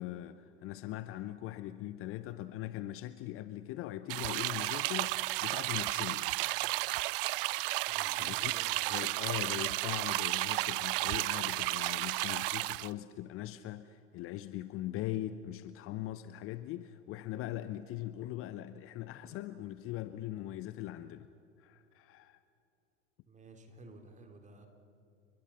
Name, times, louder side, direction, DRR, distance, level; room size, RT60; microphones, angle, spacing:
voice 1, 0.0-6.3 8.1-8.5 8.9-21.3 21.6-22.4, left 14 dB, 35° left, 0.8 m, -41 dB
sound 1, 4.1-12.9, right 21 dB, 50° right, 0.5 m, -33 dB
voice 2, 7.9-9.0 23.3-24.7, right 2 dB, 20° right, 3.4 m, -53 dB
30.0 x 22.5 x 5.7 m
figure-of-eight pair, 80°, 38 cm